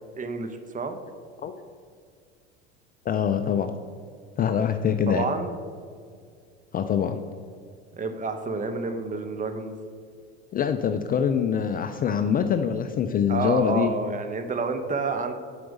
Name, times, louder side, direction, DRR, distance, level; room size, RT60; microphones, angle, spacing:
voice 1, 0.2-1.0 5.1-5.5 7.9-9.8 13.3-15.3, right 4 dB, 25° right, 7 dB, 0.8 m, -29 dB
voice 2, 3.1-3.7 4.4-5.3 6.7-7.2 10.5-13.9, left 8 dB, 25° left, 8 dB, 0.4 m, -24 dB
7.7 x 5.0 x 5.3 m, 2.2 s
hypercardioid pair, 80°, 33 cm